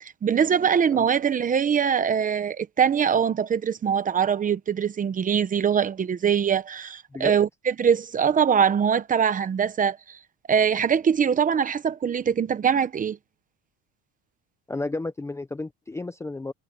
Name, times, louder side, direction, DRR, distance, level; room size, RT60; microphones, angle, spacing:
voice 1, 0.0-10.2 10.5-13.2, right 7 dB, 20° right, 0.8 m, -23 dB
voice 2, 14.7-16.5, left 2 dB, 10° left, 0.6 m, -32 dB
cardioid pair, 155°, 36 cm